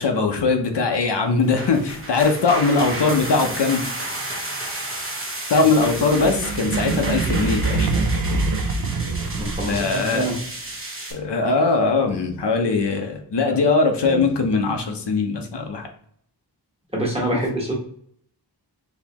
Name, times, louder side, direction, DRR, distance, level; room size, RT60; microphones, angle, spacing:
voice 1, 0.0-3.8 5.5-7.9 9.6-10.3 11.1-15.9, left 4 dB, 75° left, 3 dB, 0.8 m, -21 dB
sound 1, 1.4-11.1, right 1 dB, 30° right, 1.0 m, -32 dB
sound 2, 5.9-10.1, right 3 dB, 50° right, 0.5 m, -24 dB
voice 2, 9.4-10.4 13.5-13.6 14.0-14.3 16.9-17.7, right 1 dB, 15° right, -3 dB, 1.3 m, -26 dB
4.1 x 3.1 x 2.9 m, 0.64 s
wide cardioid pair, 95°, 41 cm